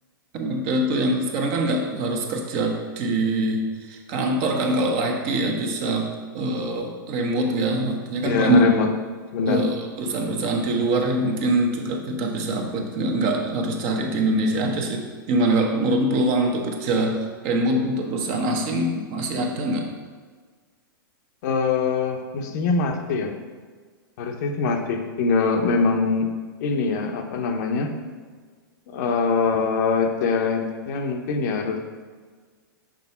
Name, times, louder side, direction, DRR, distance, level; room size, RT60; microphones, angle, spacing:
voice 1, 0.3-8.7 9.5-19.9, right 1 dB, 45° right, 2 dB, 1.0 m, -24 dB
voice 2, 8.2-8.9 9.3-9.7 21.4-23.3 24.2-26.3 26.6-27.9 28.9-31.8, left 4 dB, 55° left, 4 dB, 0.8 m, -23 dB
6.1 x 3.4 x 5.6 m, 1.5 s
hypercardioid pair, 110°, 12 cm